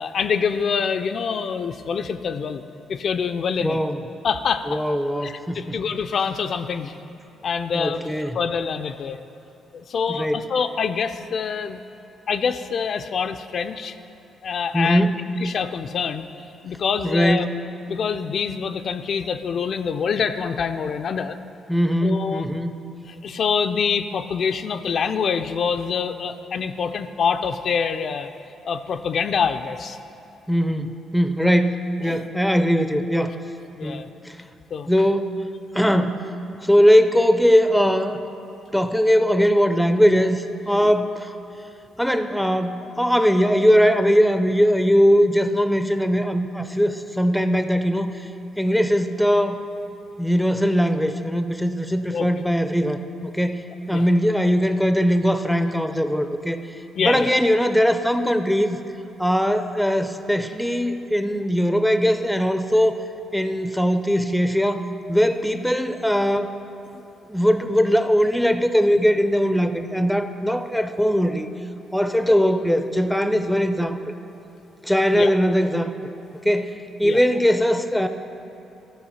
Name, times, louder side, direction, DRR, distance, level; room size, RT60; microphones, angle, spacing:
voice 1, 0.0-2.6 2.9-3.8 4.2-4.8 5.2-6.9 7.4-8.0 8.3-9.2 9.7-11.8 12.3-14.0 14.4-15.0 15.4-16.3 16.6-17.5 17.9-21.4 22.0-22.4 23.1-28.3 28.6-30.0 32.0-32.2 33.8-34.1 34.7-34.9 40.7-40.9 52.1-52.3 53.9-54.0 57.0-57.3 66.9-67.0 75.1-75.3 77.0-77.2, left 6 dB, 55° left, 9 dB, 0.4 m, -25 dB
voice 2, 3.6-4.0 4.7-5.8 7.7-8.4 10.1-10.4 14.7-15.2 17.0-17.6 21.7-22.7 30.5-33.4 33.8-34.5 34.9-35.4 35.7-36.3 36.6-38.2 38.7-41.3 42.0-48.2 48.6-49.6 50.2-56.6 57.0-58.8 59.2-63.0 63.3-66.5 67.3-71.5 71.9-74.0 74.8-75.9 76.4-78.1, equal, ahead, 9 dB, 0.5 m, -20 dB
13.5 x 4.6 x 5.7 m, 3.0 s
cardioid pair, 90°, 0 cm